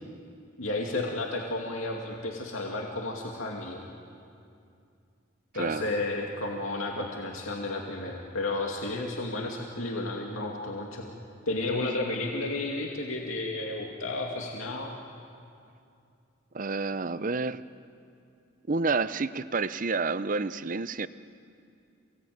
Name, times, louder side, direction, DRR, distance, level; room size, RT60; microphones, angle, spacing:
voice 1, 0.6-3.8 5.5-11.1 11.5-14.9, left 2 dB, 85° left, 0 dB, 2.4 m, -32 dB
voice 2, 16.5-17.6 18.7-21.1, right 4 dB, 40° right, 14 dB, 0.6 m, -29 dB
28.0 x 18.0 x 9.4 m, 2.5 s
head